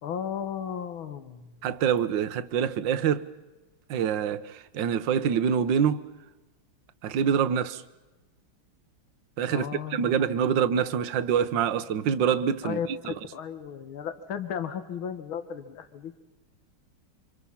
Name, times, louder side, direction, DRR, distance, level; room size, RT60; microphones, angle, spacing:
voice 1, 0.0-1.5 9.5-10.3 12.6-12.9 13.3-16.1, left 8 dB, 70° left, 2.3 m, -35 dB
voice 2, 1.6-3.3 3.9-6.1 7.0-7.8 9.4-13.1, right 8 dB, 65° right, 1.6 m, -26 dB
28.0 x 26.5 x 5.8 m
omnidirectional pair, 2.3 m